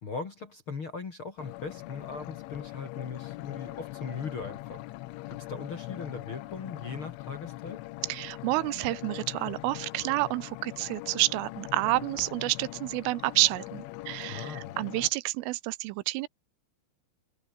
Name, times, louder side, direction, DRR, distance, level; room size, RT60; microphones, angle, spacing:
voice 1, 0.0-4.8 5.3-7.8 14.3-14.7, left 4 dB, 40° left, 2.1 m, -39 dB
sound 1, 1.4-15.1, left 19 dB, 80° left, 3.2 m, -41 dB
voice 2, 8.1-16.3, right 20 dB, 85° right, 3.3 m, -29 dB
omnidirectional pair, 5.7 m